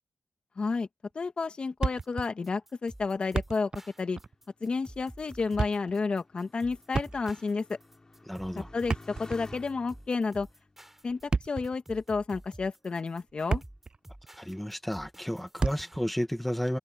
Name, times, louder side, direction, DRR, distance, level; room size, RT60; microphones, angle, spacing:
voice 1, 0.6-0.9 1.2-3.7 4.0-4.2 4.6-7.8 8.7-10.5 11.0-13.6, left 4 dB, 55° left, 2.0 m, -31 dB
Thump thud, 1.8-2.3 2.6-2.7 3.2-3.9 4.2-4.3 5.3-6.0 6.9-7.5 8.7-9.7 11.1-11.8 12.5-12.6 13.2-14.0 14.2-14.4 15.6-16.0, right 4 dB, 40° right, 0.5 m, -32 dB
sound 1, 2.0-16.0, right 1 dB, 10° right, 5.4 m, -51 dB
Motorcycle, 3.7-12.4 13.1-13.7, left 2 dB, 30° left, 4.4 m, -54 dB
voice 2, 8.3-8.7 14.4-16.8, equal, 5° left, 2.2 m, -32 dB
cardioid pair, 70°, 2 cm